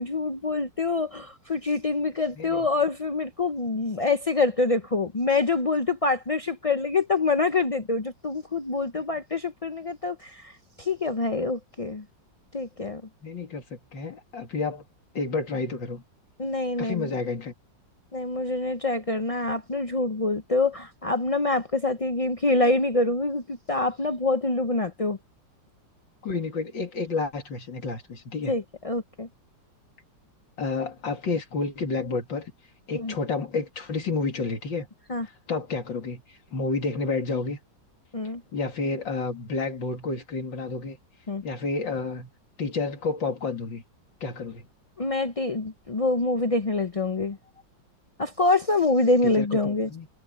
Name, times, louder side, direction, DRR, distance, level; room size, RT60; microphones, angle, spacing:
voice 1, 0.0-10.5 10.8-12.0 12.5-13.0 16.4-17.1 18.1-25.2 28.5-29.3 32.9-33.2 35.1-35.3 38.1-38.4 41.3-41.4 45.0-47.4 48.2-49.9, left 3 dB, 65° left, 0.3 m, -26 dB
voice 2, 13.2-14.8 15.1-16.0 16.8-17.5 26.2-28.6 30.6-32.5 32.9-34.9 35.5-36.2 36.5-37.6 38.5-41.0 41.4-42.3 42.6-43.8 44.2-44.6 49.2-50.1, left 4 dB, 80° left, 3.2 m, -30 dB
omnidirectional pair, 2.0 m